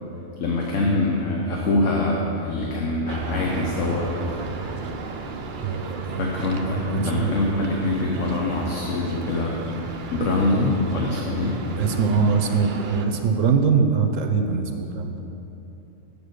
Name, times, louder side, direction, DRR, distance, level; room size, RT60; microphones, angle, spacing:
voice 1, 0.4-4.1 6.2-9.5 10.1-11.6, left 2 dB, 65° left, -2 dB, 1.2 m, -24 dB
sound 1, 3.1-13.1, right 3 dB, 55° right, 0.6 m, -34 dB
voice 2, 5.6-6.3 6.9-7.4 11.8-15.1, right 5 dB, 70° right, 5 dB, 1.0 m, -22 dB
8.0 x 6.9 x 6.5 m, 3.0 s
omnidirectional pair, 1.4 m